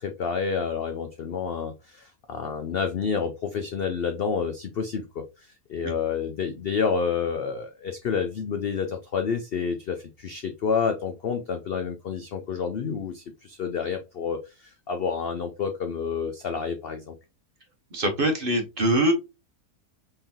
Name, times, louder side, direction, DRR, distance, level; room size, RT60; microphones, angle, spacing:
voice 1, 0.0-17.1, left 6 dB, 70° left, 6 dB, 0.5 m, -29 dB
voice 2, 17.9-19.1, right 1 dB, 40° right, 5 dB, 1.0 m, -23 dB
5.6 x 3.4 x 2.7 m, 0.26 s
omnidirectional pair, 1.7 m